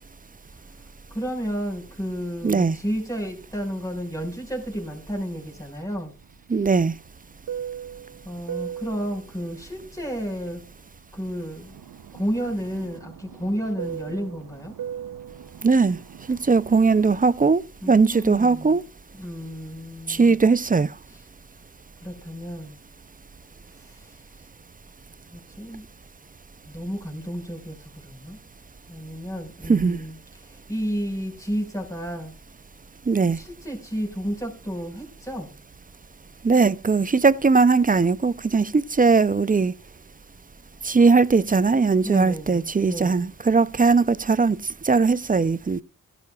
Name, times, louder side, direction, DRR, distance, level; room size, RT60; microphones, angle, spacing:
voice 1, 1.1-6.1 8.2-10.6 11.1-11.8 12.1-14.7 17.8-18.8 19.1-20.4 21.1-21.2 22.0-22.8 23.7-24.4 25.3-25.8 26.7-28.4 28.9-32.3 33.3-35.5 42.0-43.3, equal, 10° left, 5.2 m, -32 dB
voice 2, 2.4-2.8 6.5-6.9 15.6-16.0 16.3-18.8 20.1-20.9 29.7-30.0 33.1-33.4 36.4-39.7 40.8-44.6 44.8-45.8, right 4 dB, 25° right, 0.5 m, -19 dB
Fixed-wing aircraft airplane, 5.9-11.2 11.6-17.4, right 9 dB, 70° right, 0.8 m, -39 dB
16.0 x 12.0 x 2.4 m
supercardioid pair, 40°, 36 cm